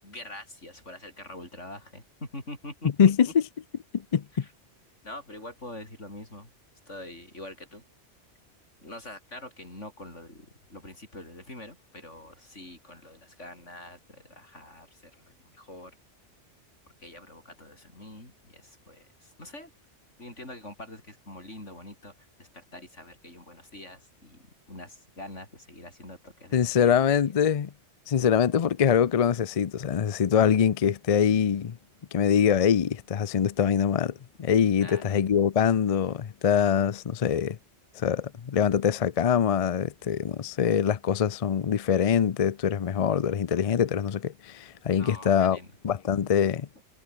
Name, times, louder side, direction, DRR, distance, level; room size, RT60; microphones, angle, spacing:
voice 1, 0.0-2.9 4.3-4.5 5.0-6.5 6.9-7.8 8.8-15.9 17.0-19.7 20.2-27.2 34.8-35.0 45.0-45.7, left 1 dB, 80° left, 8.3 m, -44 dB
voice 2, 3.0-3.4 4.1-4.4 26.5-27.7 28.1-31.8 32.1-34.1 34.4-37.6 38.0-45.6 45.8-46.7, left 8 dB, 45° left, 0.5 m, -24 dB
omnidirectional pair, 1.2 m